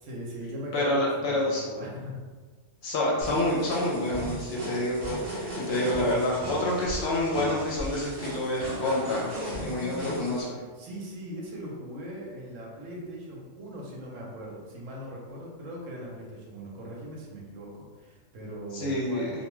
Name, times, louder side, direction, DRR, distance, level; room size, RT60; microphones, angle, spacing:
voice 1, 0.0-2.2 9.7-10.4 10.7-19.3, equal, 80° right, -3 dB, 1.0 m, -40 dB
voice 2, 0.7-1.6 2.8-10.5 18.7-19.3, left 1 dB, 60° left, -4 dB, 0.8 m, -28 dB
sound 1, 3.2-10.4, equal, 45° right, 0.7 m, -37 dB
2.4 x 2.2 x 3.0 m, 1.4 s
omnidirectional pair, 1.3 m